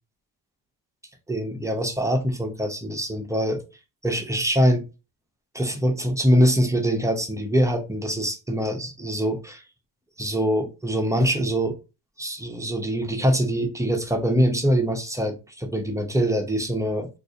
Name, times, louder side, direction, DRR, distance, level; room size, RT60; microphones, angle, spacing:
voice 1, 1.3-3.6 4.0-4.9 5.5-9.6 10.2-11.8 12.2-17.1, equal, 10° right, 0.5 m, -23 dB
3.8 x 2.5 x 2.7 m
cardioid pair, 145°, 41 cm